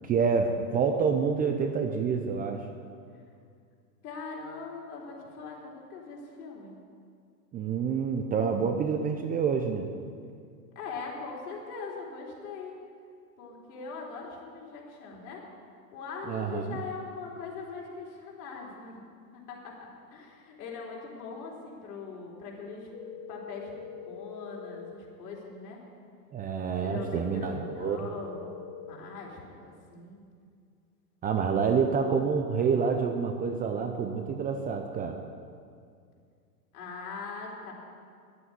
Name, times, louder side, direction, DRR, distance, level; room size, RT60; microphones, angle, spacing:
voice 1, 0.0-2.7 7.5-9.9 16.3-16.8 26.3-28.0 31.2-35.2, right 6 dB, 20° right, 5 dB, 0.6 m, -28 dB
voice 2, 4.0-6.8 10.7-12.7 13.4-15.4 15.9-19.0 19.3-22.9 23.3-23.7 24.0-25.8 26.8-28.5 28.7-30.2 36.7-37.7, left 4 dB, 60° left, -2 dB, 4.2 m, -41 dB
sound 1, 22.9-24.9 26.9-28.9, left 7 dB, 25° left, 0.8 m, -43 dB
11.0 x 9.1 x 9.5 m, 2.3 s
hypercardioid pair, 125°, 48 cm